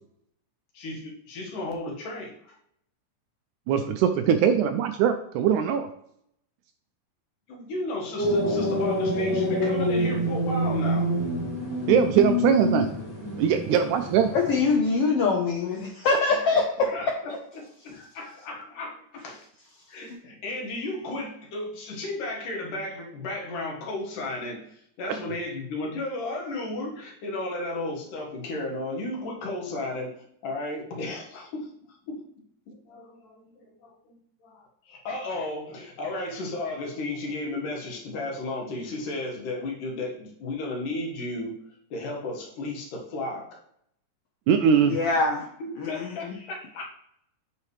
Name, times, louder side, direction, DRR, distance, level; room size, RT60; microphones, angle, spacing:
voice 1, 0.7-2.6 7.5-11.1 16.3-16.5 16.8-19.5 19.9-31.7 32.1-43.6 45.6-46.8, left 2 dB, 70° left, 0 dB, 3.0 m, -34 dB
voice 2, 3.7-5.9 11.9-12.9 13.4-14.3 44.5-45.0, right 8 dB, 80° right, 8 dB, 1.8 m, -21 dB
sound 1, 8.2-14.7, left 1 dB, 5° left, 1.5 m, -27 dB
voice 3, 14.5-16.6 44.9-45.4 45.8-45.9, left 4 dB, 90° left, 1 dB, 1.3 m, -23 dB
8.8 x 5.7 x 3.2 m, 0.71 s
omnidirectional pair, 3.9 m